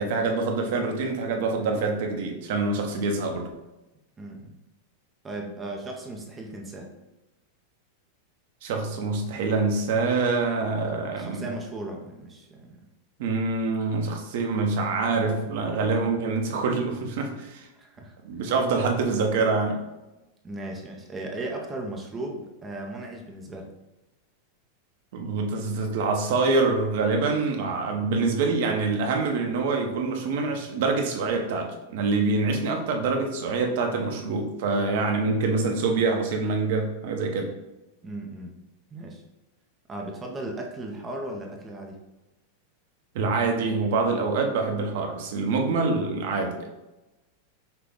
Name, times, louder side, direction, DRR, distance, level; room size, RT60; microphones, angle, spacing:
voice 1, 0.0-3.5 8.6-11.5 13.2-17.7 18.2-19.8 25.1-37.5 43.1-46.7, right 3 dB, 60° right, 3 dB, 0.8 m, -25 dB
voice 2, 4.2-4.6 5.2-6.9 11.1-12.8 17.7-18.2 20.4-23.7 38.0-38.6 38.9-39.2 39.9-42.0, right 2 dB, 15° right, 1 dB, 0.5 m, -36 dB
5.9 x 2.2 x 3.5 m, 1.0 s
supercardioid pair, 160°, 0 cm